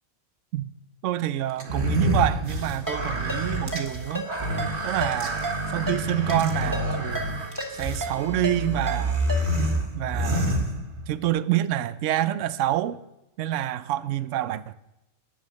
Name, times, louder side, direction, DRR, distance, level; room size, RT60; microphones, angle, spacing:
voice 1, 1.0-4.3 4.8-5.4 5.7-7.4 7.7-9.2 9.9-10.6 11.1-13.0 13.4-14.7, right 13 dB, 65° right, 0.9 m, -27 dB
sound 1, 1.6-11.3, right 1 dB, 50° right, 1.9 m, -28 dB
Ringtone, 2.9-9.7, equal, 15° right, 1.5 m, -35 dB
12.0 x 9.1 x 6.4 m
omnidirectional pair, 1.5 m